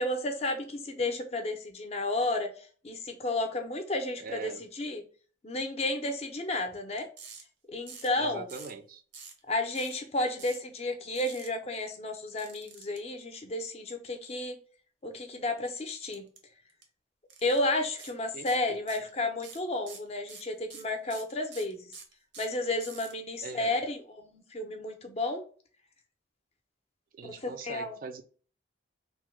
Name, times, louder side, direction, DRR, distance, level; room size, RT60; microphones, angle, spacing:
voice 1, 0.0-5.0 5.4-7.1 7.7-8.5 9.5-14.6 15.0-16.3 17.4-21.9 22.4-25.4 27.2-28.0, left 2 dB, 35° left, 0.5 m, -32 dB
voice 2, 4.2-4.6 8.2-9.0 18.3-18.5 23.4-23.8 27.1-28.2, right 4 dB, 50° right, 0.3 m, -41 dB
sound 1, 7.2-7.4 7.9-8.2 8.5-8.8 9.1-9.4 9.7-10.0 10.4-10.6 11.2-11.5 12.4-13.0 16.1-16.4 16.7-16.8 17.3-17.6 18.0-18.1 18.5-19.1 19.4-23.1, right 6 dB, 85° right, 0.7 m, -47 dB
3.0 x 2.1 x 3.1 m
head